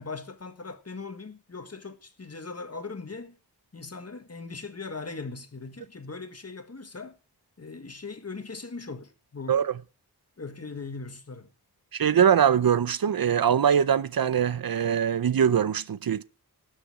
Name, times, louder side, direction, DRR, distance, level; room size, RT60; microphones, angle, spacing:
voice 1, 0.0-3.4 3.7-7.2 7.6-9.6 10.4-11.5, left 4 dB, 40° left, 1.5 m, -39 dB
voice 2, 11.9-16.2, right 8 dB, 60° right, 0.6 m, -22 dB
19.0 x 6.6 x 4.8 m
wide cardioid pair, 85°, 39 cm